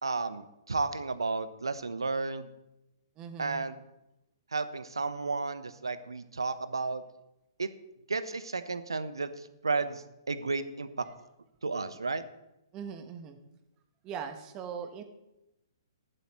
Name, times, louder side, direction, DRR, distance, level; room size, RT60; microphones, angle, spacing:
voice 1, 0.0-2.5 3.4-3.8 4.5-7.0 7.6-7.7 8.1-11.0 11.6-12.2, right 3 dB, 85° right, 12 dB, 1.0 m, -33 dB
voice 2, 3.2-3.7 12.7-13.4 14.0-15.0, right 7 dB, 30° right, 7 dB, 1.3 m, -40 dB
14.5 x 11.0 x 3.1 m, 0.90 s
figure-of-eight pair, 125°, 2 cm